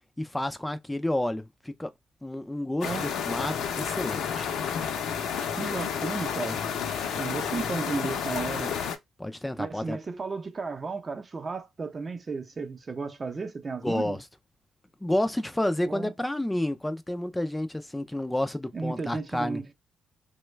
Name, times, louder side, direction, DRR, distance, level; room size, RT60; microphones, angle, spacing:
voice 1, 0.2-1.9 2.2-4.5 9.2-10.0 13.8-14.2 15.0-19.6, left 1 dB, 10° left, 0.3 m, -30 dB
sound 1, 2.8-9.0, left 7 dB, 75° left, 0.6 m, -31 dB
voice 2, 5.6-6.6 7.1-8.7 9.6-14.2 15.9-16.1 18.7-19.7, right 4 dB, 35° right, 0.6 m, -34 dB
3.0 x 2.2 x 3.2 m
cardioid pair, 90°, 0 cm